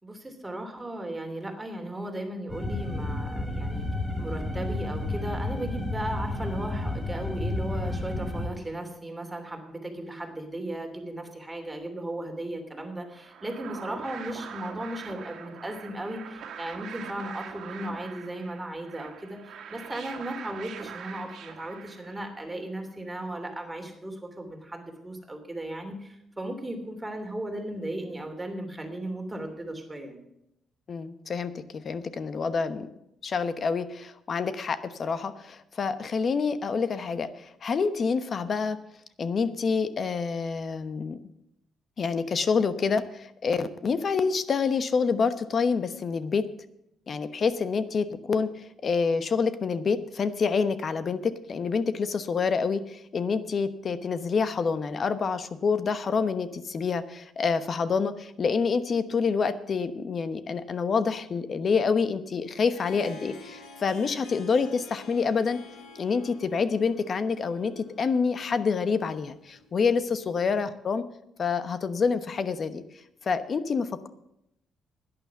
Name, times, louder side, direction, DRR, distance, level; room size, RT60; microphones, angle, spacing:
voice 1, 0.0-3.9 4.2-30.2 70.5-70.6, right 1 dB, 15° right, 3 dB, 3.0 m, -36 dB
sound 1, 2.5-8.5, left 2 dB, 20° left, 4.5 m, -31 dB
sound 2, 13.1-22.5, right 7 dB, 70° right, 1.8 m, -43 dB
voice 2, 30.9-32.9 33.2-38.8 39.2-41.2 42.0-46.5 47.1-65.6 65.9-71.0 71.4-72.8 73.2-74.1, left 5 dB, 45° left, 13 dB, 1.0 m, -27 dB
Harp, 62.4-70.2, left 2 dB, 80° left, 2.3 m, -49 dB
11.0 x 9.9 x 7.0 m, 0.82 s
cardioid pair, 90°, 0 cm